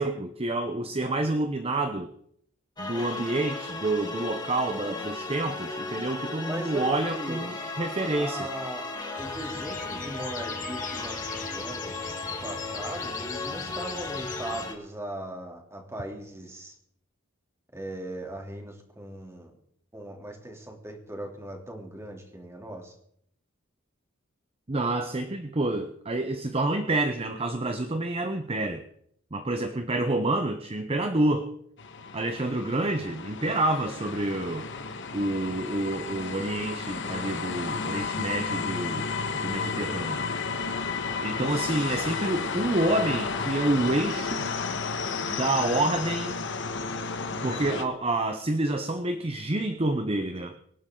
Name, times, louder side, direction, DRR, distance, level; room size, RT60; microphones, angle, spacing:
voice 1, 0.0-2.1 2.8-8.5 24.7-28.8 29.3-31.5 32.1-34.7 35.1-40.2 41.2-44.6 45.2-46.4 47.3-50.5, right 2 dB, 30° right, 7 dB, 0.9 m, -28 dB
sound 1, 2.8-14.7, left 3 dB, 20° left, 2.9 m, -36 dB
voice 2, 6.4-7.5 8.2-8.8 9.2-16.7 17.7-19.5 19.9-22.9, right 1 dB, 15° right, 1 dB, 3.2 m, -39 dB
sound 2, 9.2-14.6, left 6 dB, 40° left, 1.5 m, -40 dB
sound 3, 31.8-47.8, left 4 dB, 65° left, 1.5 m, -32 dB
25.5 x 11.0 x 3.9 m, 0.69 s
head